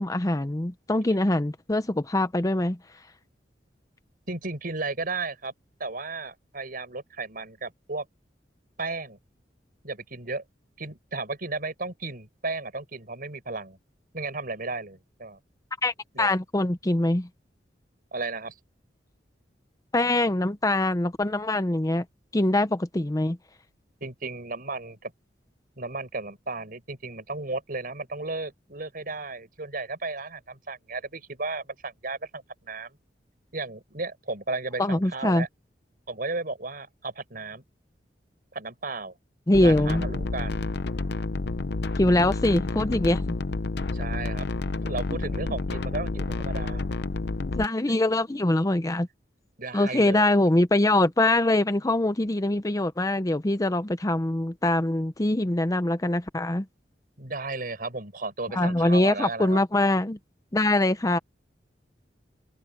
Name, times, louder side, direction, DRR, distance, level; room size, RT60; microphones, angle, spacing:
voice 1, 0.0-2.8 15.8-17.3 19.9-22.0 22.3-23.4 34.8-35.5 39.5-40.1 42.0-43.3 47.4-49.1 49.7-56.7 58.5-60.2 60.5-61.2, left 1 dB, 20° left, 0.7 m, -23 dB
voice 2, 4.3-5.5 5.8-8.1 8.8-9.2 9.8-10.4 10.8-13.8 14.1-15.4 16.1-16.3 18.1-18.5 24.0-25.1 25.8-32.9 33.5-35.5 36.1-37.6 38.5-39.1 39.6-40.6 43.9-44.5 44.8-46.8 49.6-50.3 57.2-59.6, right 3 dB, 55° right, 5.8 m, -34 dB
sound 1, 39.5-47.7, left 3 dB, 70° left, 0.7 m, -30 dB
head